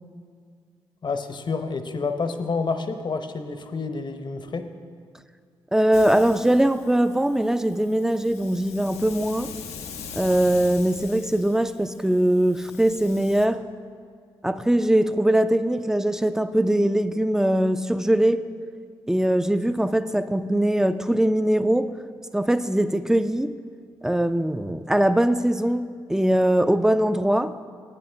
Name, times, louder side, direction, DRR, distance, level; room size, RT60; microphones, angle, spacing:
voice 1, 1.0-4.7, left 4 dB, 45° left, 0.8 m, -29 dB
voice 2, 5.7-9.5 10.1-13.6 14.4-18.5 19.1-22.0 22.3-23.5 24.0-27.6, right 1 dB, 5° right, 0.4 m, -21 dB
Hiss, 5.9-13.5, left 7 dB, 85° left, 0.6 m, -42 dB
11.0 x 8.5 x 3.5 m
supercardioid pair, 50°, 11 cm